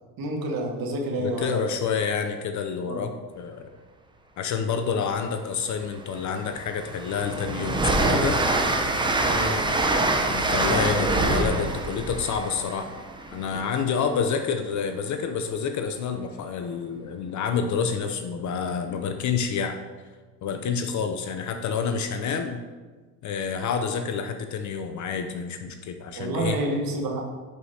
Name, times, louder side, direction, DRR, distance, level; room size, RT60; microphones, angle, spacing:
voice 1, 0.2-1.7 2.8-3.1 9.2-9.8 26.1-27.3, right 1 dB, 45° right, 0 dB, 1.8 m, -29 dB
voice 2, 1.2-3.7 4.4-8.4 10.3-12.9 13.3-19.8 20.4-22.6 23.2-26.6, left 6 dB, 40° left, 7 dB, 0.7 m, -28 dB
Train, 5.6-5.7 6.2-13.9, right 2 dB, 10° right, 0.7 m, -25 dB
10.5 x 4.9 x 2.8 m, 1.4 s
hypercardioid pair, 80°, 49 cm